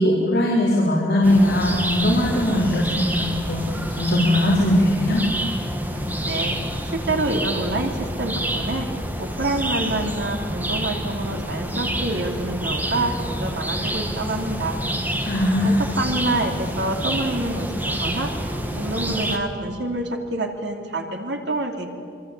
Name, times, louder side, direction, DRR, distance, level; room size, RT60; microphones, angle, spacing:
voice 1, 0.0-3.6 4.0-5.2 15.2-15.8, left 1 dB, 65° left, -5 dB, 4.5 m, -19 dB
sound 1, 1.2-19.4, equal, 10° right, 1.8 m, -28 dB
voice 2, 6.2-6.6 6.9-8.9 9.2-14.8 15.6-18.3 18.8-21.9, right 2 dB, 75° right, 3 dB, 3.1 m, -27 dB
27.0 x 24.0 x 8.5 m, 2.3 s
head